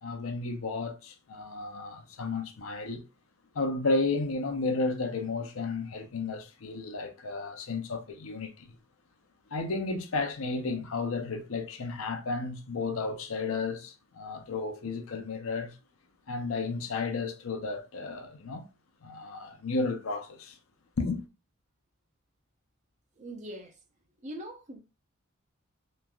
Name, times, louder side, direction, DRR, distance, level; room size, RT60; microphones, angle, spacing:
voice 1, 0.0-3.1 3.5-8.8 9.5-15.8 16.3-18.7 19.0-20.6 21.0-21.2, left 3 dB, 75° left, 0.6 m, -33 dB
voice 2, 23.2-23.8 24.2-24.8, right 1 dB, 35° right, 0.6 m, -42 dB
3.1 x 2.4 x 2.2 m
head